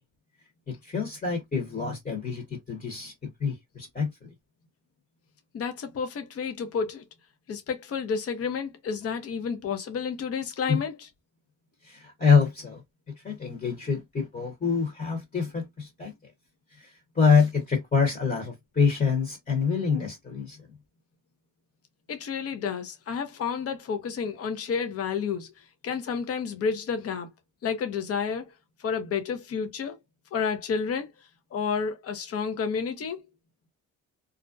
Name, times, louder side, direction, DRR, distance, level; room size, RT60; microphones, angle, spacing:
voice 1, 0.7-4.3 10.7-10.8 11.8-12.8 13.2-16.1 16.8-16.9 17.1-20.6, left 5 dB, 30° left, 1.1 m, -26 dB
voice 2, 5.5-7.0 7.5-11.1 22.1-27.3 27.6-28.5 28.8-30.0 30.3-31.1 31.5-33.2, left 6 dB, 50° left, 0.7 m, -30 dB
2.5 x 2.1 x 2.5 m
cardioid pair, 90°, 30 cm